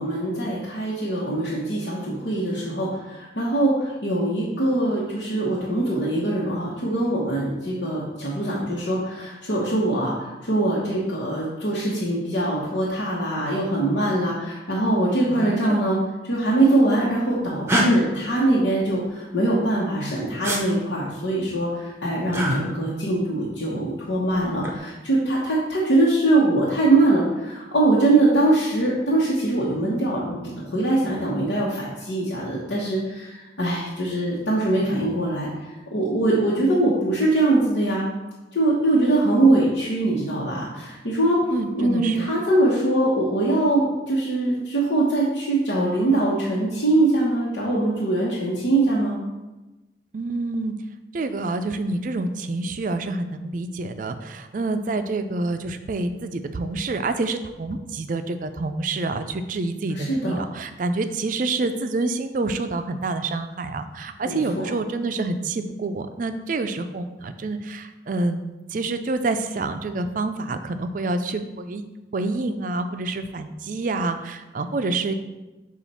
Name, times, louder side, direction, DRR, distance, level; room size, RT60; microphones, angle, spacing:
voice 1, 0.0-16.0 16.2-35.5 35.9-38.0 38.5-49.2 59.9-60.4 64.2-64.7, right 2 dB, 85° left, -7 dB, 1.1 m, -22 dB
voice 2, 15.3-15.9 41.5-42.3 50.1-50.8 51.1-71.8 72.1-75.1, right 3 dB, 45° right, 9 dB, 0.4 m, -27 dB
sound 1, 17.7-17.9 20.4-20.6 22.3-22.6 24.4-24.8, equal, 15° right, 0.7 m, -22 dB
7.0 x 2.5 x 5.5 m, 1.1 s
head